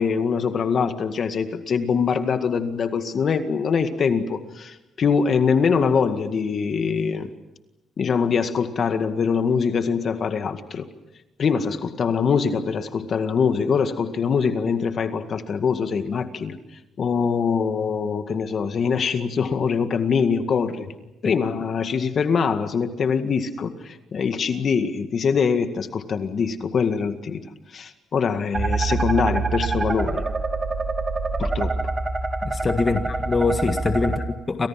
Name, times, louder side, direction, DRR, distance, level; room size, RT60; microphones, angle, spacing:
voice 1, 0.0-7.3 8.0-10.8 11.4-16.6 17.0-20.9 21.2-27.4 27.7-30.2 31.4-31.7, left 6 dB, 50° left, 8 dB, 2.0 m, -23 dB
sound 1, 28.5-34.2, right 3 dB, 30° right, 3.1 m, -25 dB
voice 2, 32.4-34.7, left 3 dB, 30° left, 7 dB, 1.7 m, -24 dB
29.5 x 25.5 x 6.0 m, 0.97 s
cardioid pair, 90°, 0 cm